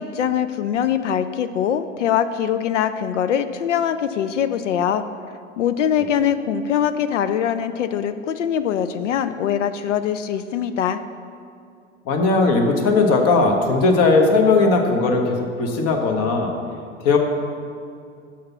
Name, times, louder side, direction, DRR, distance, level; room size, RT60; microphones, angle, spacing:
voice 1, 0.0-5.0 5.6-11.0, left 9 dB, 70° left, 11 dB, 0.5 m, -22 dB
voice 2, 12.1-16.5 17.0-17.2, left 3 dB, 40° left, 3 dB, 1.1 m, -18 dB
6.4 x 5.7 x 5.9 m, 2.4 s
figure-of-eight pair, 85°, 37 cm